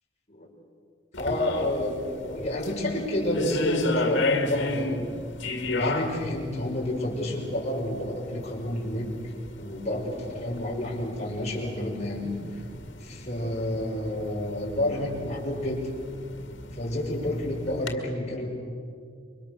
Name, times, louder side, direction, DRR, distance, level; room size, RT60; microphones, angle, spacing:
sound 1, 1.1-17.9, left 2 dB, 85° left, 2.3 m, -34 dB
voice 1, 1.2-5.1 5.7-12.3 13.0-15.9 16.7-18.5, left 1 dB, 35° left, -3 dB, 6.3 m, -30 dB
29.0 x 24.0 x 6.9 m, 2.3 s
head